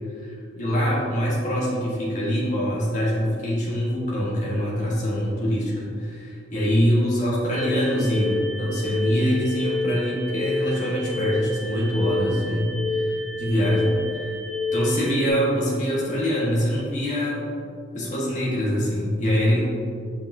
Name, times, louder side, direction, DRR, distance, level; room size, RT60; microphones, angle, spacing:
voice 1, 0.6-14.3 14.7-17.4 17.9-19.6, equal, 40° left, -6 dB, 1.5 m, -24 dB
sound 1, 7.5-15.3, left 2 dB, ahead, 1.1 m, -28 dB
7.4 x 5.3 x 2.7 m, 2.3 s
head